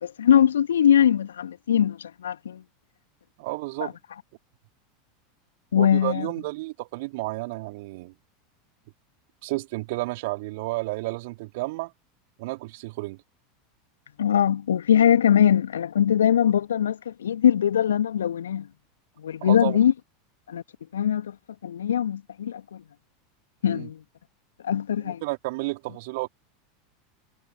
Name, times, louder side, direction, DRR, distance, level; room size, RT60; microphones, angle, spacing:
voice 1, 0.0-2.6 3.8-3.9 5.7-6.3 14.2-18.7 19.2-19.9 20.5-20.6 20.9-21.3 21.6-22.8 23.6-24.0 24.6-25.2, left 9 dB, 70° left, 2.3 m, -21 dB
voice 2, 3.4-4.0 5.8-8.1 9.4-11.9 12.4-13.2 19.4-19.8 23.6-23.9 25.0-26.3, right 23 dB, 55° right, 4.5 m, -31 dB
figure-of-eight pair, 85°, 0 cm